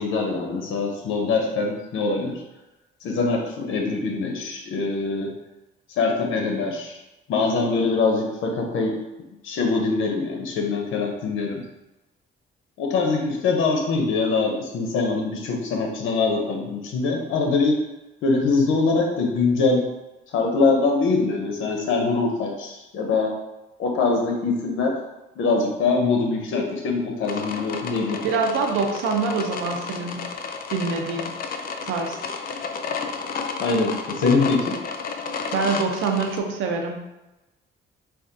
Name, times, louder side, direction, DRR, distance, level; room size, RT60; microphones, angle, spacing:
voice 1, 0.0-2.4 3.0-5.3 6.0-7.0 7.3-9.0 9.4-11.6 12.8-17.8 18.2-19.8 20.3-23.3 23.8-24.9 25.4-28.2 33.6-34.8, left 4 dB, 80° left, 1 dB, 0.7 m, -23 dB
sound 1, 27.2-36.4, left 5 dB, 45° left, 0.4 m, -32 dB
voice 2, 28.2-30.3 30.7-31.3 31.8-32.2 35.5-37.0, right 4 dB, 85° right, 3 dB, 0.6 m, -25 dB
4.1 x 2.3 x 2.6 m, 1.0 s
cardioid pair, 90°, 20 cm